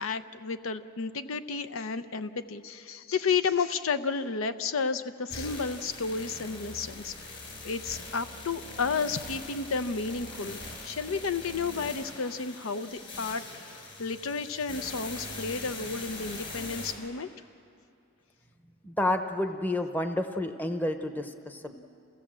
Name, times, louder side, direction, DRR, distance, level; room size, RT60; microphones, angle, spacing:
voice 1, 0.0-7.3 7.6-17.3, left 5 dB, 85° left, 10 dB, 0.7 m, -32 dB
sound 1, 5.3-16.9, left 2 dB, 60° left, 5.3 m, -42 dB
voice 2, 18.8-21.7, left 1 dB, 10° left, 6 dB, 0.8 m, -30 dB
28.0 x 17.0 x 7.5 m, 2.5 s
head